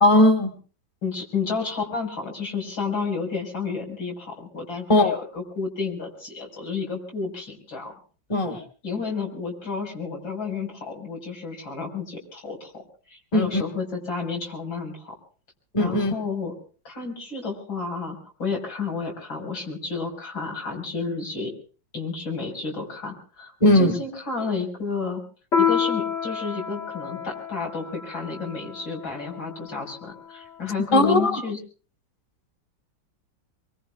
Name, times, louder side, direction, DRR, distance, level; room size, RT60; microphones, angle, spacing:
voice 1, 0.0-0.5 4.9-5.1 8.3-8.6 13.3-13.6 15.7-16.1 23.6-23.9 30.8-31.4, left 1 dB, 15° left, 5 dB, 1.6 m, -18 dB
voice 2, 1.0-7.9 8.8-12.8 13.1-15.2 15.8-16.5 16.8-21.5 21.9-25.2 25.6-31.6, left 4 dB, 85° left, -1 dB, 6.0 m, -31 dB
Piano, 25.5-30.5, left 7 dB, 40° left, 1.5 m, -29 dB
25.5 x 23.5 x 2.4 m, 0.38 s
omnidirectional pair, 2.1 m